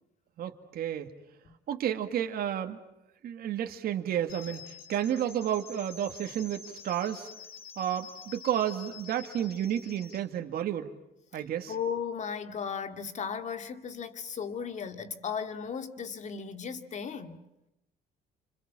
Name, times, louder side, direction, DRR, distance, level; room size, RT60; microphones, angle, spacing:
voice 1, 0.4-1.1 1.7-2.8 3.2-7.3 7.8-10.9 11.3-11.7, right 10 dB, 65° right, 2.1 m, -31 dB
sound 1, 4.3-10.2, left 6 dB, 65° left, 3.0 m, -48 dB
voice 2, 11.7-17.4, left 6 dB, 45° left, 2.3 m, -36 dB
29.0 x 26.5 x 7.4 m
cardioid pair, 110°, 17 cm